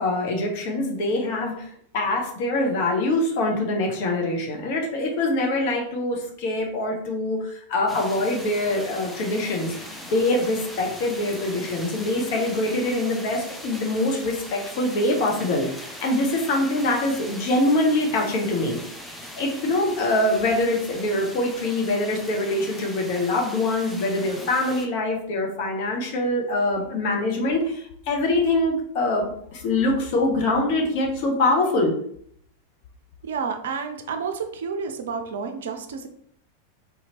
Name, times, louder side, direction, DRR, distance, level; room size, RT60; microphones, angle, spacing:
voice 1, 0.0-15.7 16.0-18.8 19.4-31.9, left 2 dB, 45° left, 0 dB, 0.9 m, -24 dB
sound 1, 7.9-24.9, left 1 dB, 5° left, 0.6 m, -40 dB
voice 2, 33.2-36.1, right 5 dB, 60° right, 7 dB, 0.5 m, -30 dB
3.9 x 2.8 x 2.9 m, 0.66 s
figure-of-eight pair, 90°, 0 cm